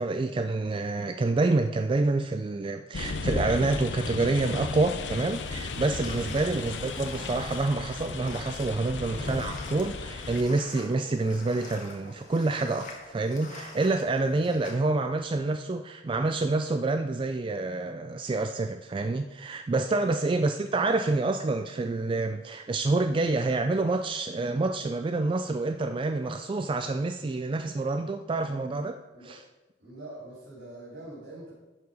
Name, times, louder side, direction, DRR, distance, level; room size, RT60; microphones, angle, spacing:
voice 1, 0.0-29.0 29.2-29.4, right 3 dB, 30° right, 7 dB, 0.3 m, -27 dB
sound 1, 2.9-10.4, left 3 dB, 90° left, 0.7 m, -35 dB
sound 2, 5.0-7.8 9.6-9.7 11.7-11.8, equal, 5° right, 3.3 m, -51 dB
sound 3, 5.8-14.8, left 2 dB, 45° left, 1.5 m, -46 dB
voice 2, 9.0-9.4 20.2-20.6 29.1-29.4 29.8-31.5, right 2 dB, 80° right, -7 dB, 3.0 m, -44 dB
11.0 x 4.7 x 5.3 m, 1.1 s
head